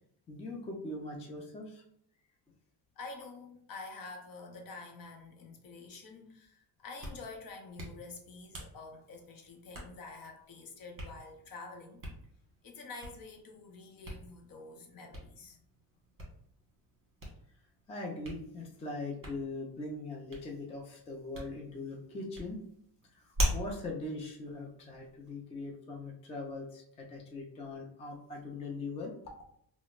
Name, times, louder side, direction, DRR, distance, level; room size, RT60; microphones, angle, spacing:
voice 1, 0.3-1.8 17.9-22.6 23.1-29.1, left 2 dB, 15° left, -1 dB, 0.3 m, -41 dB
voice 2, 3.0-12.0 12.6-15.6, left 3 dB, 55° left, 2 dB, 0.7 m, -48 dB
Hands, 6.8-25.3, equal, 30° right, 1.1 m, -43 dB
5.0 x 2.0 x 2.3 m, 0.69 s
cardioid pair, 165°, 42 cm